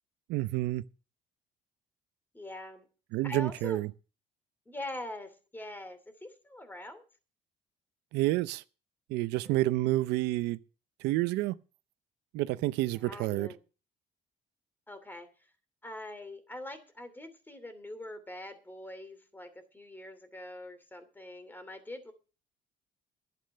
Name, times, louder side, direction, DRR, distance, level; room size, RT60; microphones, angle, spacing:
voice 1, 0.3-0.8 3.1-3.9 8.1-8.6 9.1-10.6 11.0-11.6 12.3-13.5, right 17 dB, 90° right, 0.6 m, -29 dB
voice 2, 2.3-2.9 3.2-3.8 4.7-7.0 9.4-9.7 12.9-13.6 14.9-15.3 15.8-22.1, left 1 dB, 10° left, 2.7 m, -43 dB
11.5 x 8.8 x 6.5 m
cardioid pair, 110°, 17 cm